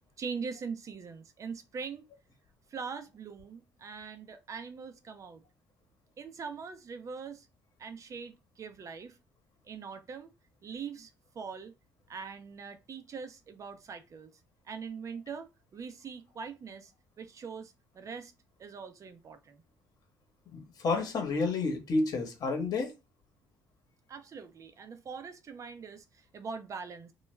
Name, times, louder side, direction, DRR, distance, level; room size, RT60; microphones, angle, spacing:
voice 1, 0.2-2.1 2.7-5.4 6.2-7.5 7.8-9.2 9.6-10.3 10.6-11.7 12.1-14.3 14.7-16.9 17.2-18.3 18.6-19.6 24.1-27.1, right 5 dB, 45° right, 0.6 m, -42 dB
voice 2, 20.5-22.9, left 3 dB, 55° left, 1.0 m, -30 dB
2.3 x 2.2 x 3.2 m
supercardioid pair, 70°, 8 cm